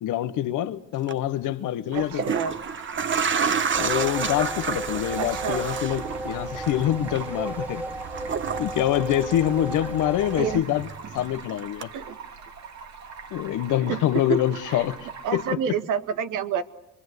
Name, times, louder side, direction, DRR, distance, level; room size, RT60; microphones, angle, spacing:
voice 1, 0.0-2.3 3.8-7.8 8.6-10.9 11.1-11.9 13.3-15.0 15.3-15.8, left 12 dB, 85° left, 1.2 m, -25 dB
sound 1, 0.9-1.1 2.0-10.0 10.3-11.4 11.8-11.9, right 6 dB, 40° right, 1.2 m, -30 dB
Stream, 1.9-15.5, right 5 dB, 65° right, 2.9 m, -42 dB
voice 2, 1.9-2.6 5.2-5.6 10.4-10.6 11.9-12.2 13.9-14.4 14.7-14.9 15.2-16.6, right 7 dB, 90° right, 1.7 m, -28 dB
sound 2, 3.7-10.6, right 1 dB, 5° right, 1.4 m, -34 dB
25.0 x 23.5 x 8.1 m
cardioid pair, 90°, 30 cm